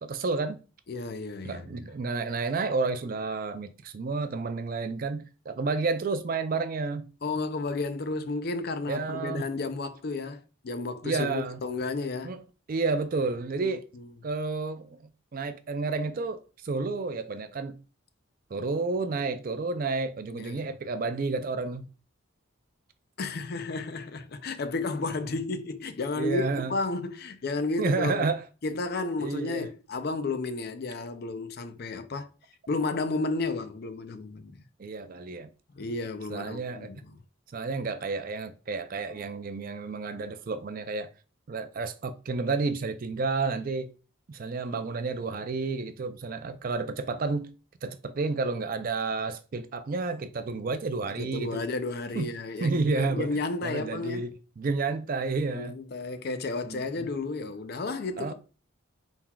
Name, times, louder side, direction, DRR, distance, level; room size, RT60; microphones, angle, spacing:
voice 1, 0.0-0.6 1.4-7.1 8.9-9.5 11.0-11.6 12.2-12.4 12.7-13.9 14.2-17.8 18.5-21.9 26.2-26.7 27.8-28.4 29.2-29.7 34.8-35.5 36.3-36.9 37.5-41.1 41.5-43.9 44.3-47.5 47.8-51.6 52.1-52.3 52.6-53.4 53.6-55.7 56.6-57.1 58.2-58.3, right 3 dB, 45° right, 0.4 m, -31 dB
voice 2, 0.9-1.7 7.2-12.4 13.6-13.7 20.4-20.7 23.2-28.3 28.6-32.3 32.7-34.6 35.8-37.2 51.2-54.3 55.5-58.3, left 3 dB, 50° left, 0.5 m, -32 dB
4.3 x 3.8 x 2.3 m
head